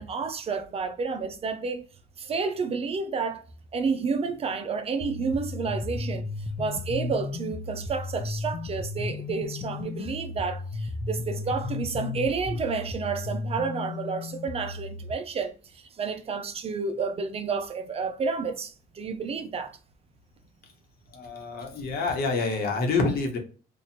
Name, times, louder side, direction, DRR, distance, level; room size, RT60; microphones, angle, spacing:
voice 1, 0.0-1.9 2.2-3.4 3.7-6.3 6.6-19.8, right 5 dB, 35° right, 0.5 m, -30 dB
sound 1, 5.0-15.1, left 3 dB, 30° left, 0.5 m, -34 dB
voice 2, 21.1-23.4, left 3 dB, 65° left, 1.1 m, -27 dB
2.8 x 2.5 x 4.2 m
cardioid pair, 110°, 17 cm